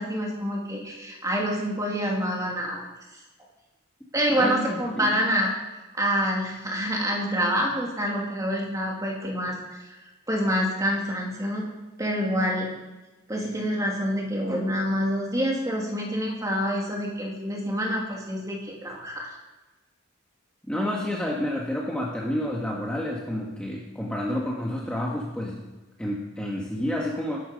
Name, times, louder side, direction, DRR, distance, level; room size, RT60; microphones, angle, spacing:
voice 1, 0.0-2.9 4.1-5.5 5.9-9.9 10.3-12.7 13.3-19.3, equal, 15° right, -2 dB, 2.8 m, -27 dB
voice 2, 4.4-5.1 20.7-25.6 26.0-27.4, left 1 dB, 5° left, -3 dB, 1.7 m, -29 dB
18.0 x 12.0 x 5.3 m, 1.1 s
head